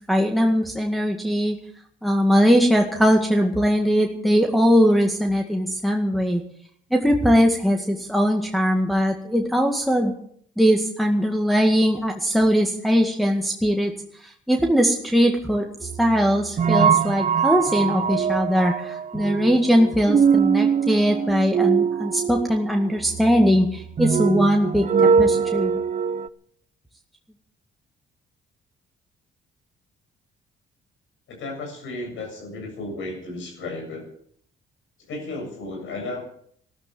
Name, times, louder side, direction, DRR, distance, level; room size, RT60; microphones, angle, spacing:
voice 1, 0.1-1.6 2.0-6.4 6.9-10.1 10.6-13.9 14.2-25.7, equal, ahead, 1 dB, 1.9 m, -20 dB
sound 1, 15.8-26.3, right 6 dB, 40° right, 0.6 m, -22 dB
voice 2, 31.3-34.1 35.1-36.2, left 2 dB, 75° left, 2 dB, 7.6 m, -34 dB
13.5 x 12.5 x 7.7 m, 0.65 s
cardioid pair, 90°, 20 cm